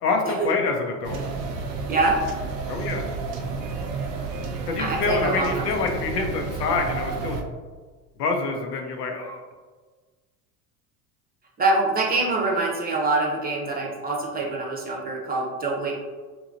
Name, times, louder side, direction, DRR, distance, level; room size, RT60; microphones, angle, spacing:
voice 1, 0.0-1.2 2.7-3.0 4.7-7.4 8.2-9.4, left 4 dB, 90° left, 3 dB, 0.6 m, -26 dB
sound 1, 1.0-7.4, right 4 dB, 90° right, 0.5 m, -31 dB
voice 2, 4.8-5.7 6.2-6.3 11.6-15.9, right 3 dB, 20° right, -2 dB, 0.6 m, -25 dB
2.9 x 2.7 x 2.5 m, 1.4 s
hypercardioid pair, 80°, 47 cm